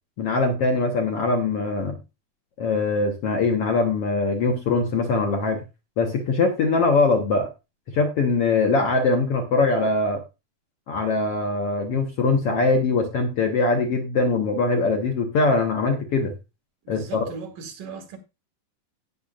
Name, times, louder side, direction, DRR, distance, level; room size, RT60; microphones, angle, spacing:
voice 1, 0.2-2.0 2.6-5.6 6.0-7.5 7.9-10.2 10.9-16.3 16.9-17.2, left 3 dB, 60° left, 1.6 m, -22 dB
voice 2, 16.8-18.2, right 5 dB, 65° right, 3.8 m, -38 dB
17.5 x 6.9 x 2.5 m
omnidirectional pair, 4.1 m